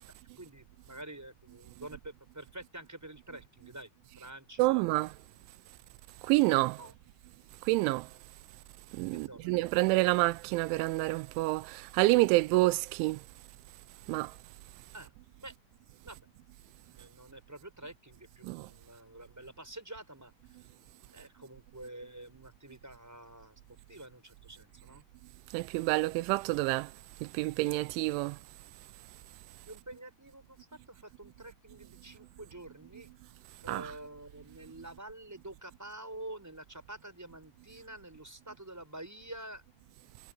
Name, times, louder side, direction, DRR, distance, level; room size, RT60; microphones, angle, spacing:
voice 1, 0.0-3.9 4.2-5.1 6.8-7.0 9.1-9.8 14.9-15.1 15.4-15.5 16.0-16.2 16.6-20.7 21.1-23.6 23.9-25.0 29.7-33.1 33.6-39.6, right 1 dB, 5° right, 6.1 m, -48 dB
voice 2, 4.6-5.1 6.2-6.8 7.7-8.1 8.9-13.2 14.1-14.3 18.4-18.7 25.5-26.9 27.2-28.4 33.7-33.9, right 21 dB, 90° right, 3.0 m, -28 dB
omnidirectional pair, 5.3 m